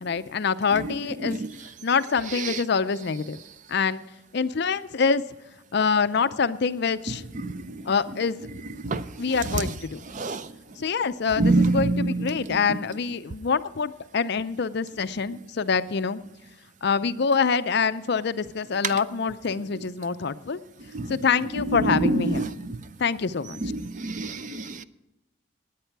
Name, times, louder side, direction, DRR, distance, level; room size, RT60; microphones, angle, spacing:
voice 1, 0.0-1.4 1.8-3.4 3.7-4.0 4.3-5.2 5.7-7.2 7.9-8.4 9.2-10.0 10.8-16.2 16.8-20.6 21.1-22.5 23.0-23.6, left 5 dB, 50° left, 0.5 m, -25 dB
voice 2, 7.4-7.8 8.8-9.0 10.1-10.5 11.4-12.3 20.9-21.1 21.7-22.8 23.6-24.8, right 2 dB, 35° right, 0.5 m, -26 dB
17.0 x 10.0 x 4.6 m
head